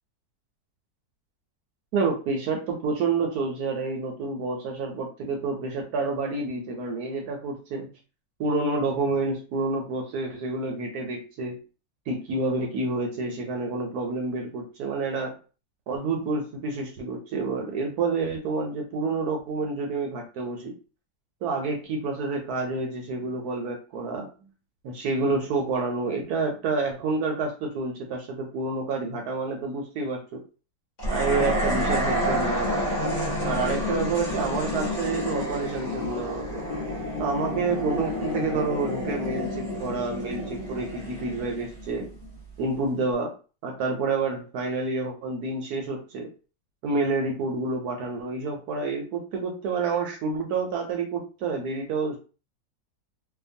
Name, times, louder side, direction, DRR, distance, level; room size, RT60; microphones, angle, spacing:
voice 1, 1.9-7.9 8.4-11.6 12.1-15.3 15.9-20.7 21.4-24.3 24.8-30.4 31.1-32.7 33.4-36.6 37.2-42.1 42.6-43.3 43.6-46.3 46.8-52.2, right 3 dB, 70° right, 2 dB, 1.0 m, -28 dB
sound 1, 31.0-42.4, left 1 dB, 35° left, 0.8 m, -29 dB
2.8 x 2.2 x 2.6 m, 0.35 s
omnidirectional pair, 2.0 m